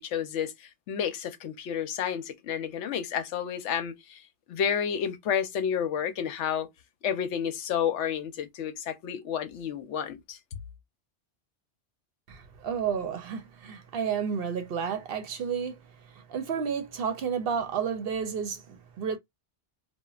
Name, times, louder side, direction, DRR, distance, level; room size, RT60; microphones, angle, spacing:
voice 1, 0.0-4.2 4.5-6.7 7.0-10.4, left 8 dB, 85° left, 0.9 m, -30 dB
voice 2, 12.3-15.8 16.1-19.2, right 7 dB, 65° right, 0.7 m, -31 dB
2.9 x 2.2 x 2.3 m
omnidirectional pair, 1.2 m